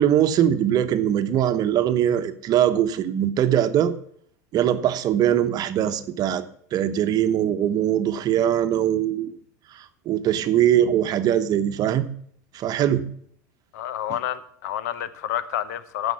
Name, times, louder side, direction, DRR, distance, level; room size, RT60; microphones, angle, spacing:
voice 1, 0.0-3.9 4.5-9.3 9.7-12.1 12.5-13.0, right 10 dB, 45° right, 0.9 m, -21 dB
voice 2, 13.7-16.1, left 11 dB, 75° left, 0.9 m, -29 dB
12.0 x 5.3 x 7.0 m
hypercardioid pair, 100°, 9 cm